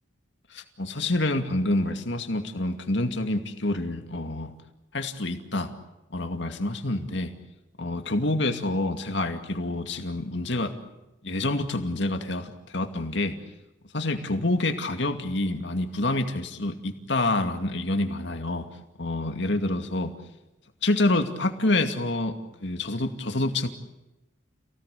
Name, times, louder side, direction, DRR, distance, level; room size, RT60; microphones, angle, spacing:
voice 1, 0.5-4.5 4.9-5.7 6.1-7.3 7.8-10.7 11.2-13.4 13.9-18.7 19.0-20.1 20.8-23.7, left 2 dB, 60° left, 6 dB, 2.4 m, -27 dB
29.5 x 18.0 x 8.5 m, 0.97 s
head